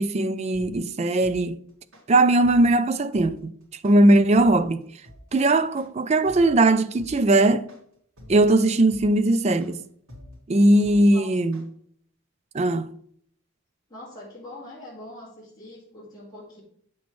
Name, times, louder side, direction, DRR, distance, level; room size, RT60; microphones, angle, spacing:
voice 1, 0.0-1.6 2.1-3.5 3.8-4.8 5.3-7.7 8.3-9.8 10.5-11.7 12.5-12.9, right 2 dB, 30° right, 0.3 m, -19 dB
sound 1, 0.5-11.6, equal, 70° right, 2.1 m, -46 dB
voice 2, 13.9-16.6, left 1 dB, 20° left, 2.0 m, -43 dB
8.4 x 6.0 x 3.1 m
head